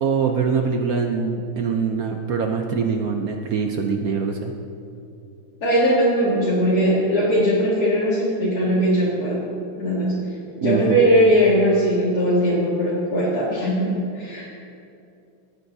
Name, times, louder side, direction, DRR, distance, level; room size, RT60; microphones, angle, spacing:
voice 1, 0.0-4.5 10.6-11.0, right 5 dB, 75° right, 3 dB, 0.8 m, -23 dB
voice 2, 5.6-9.4 9.8-10.2 10.6-14.5, equal, 45° left, -10 dB, 2.4 m, -19 dB
19.0 x 9.3 x 2.7 m, 2.6 s
omnidirectional pair, 2.3 m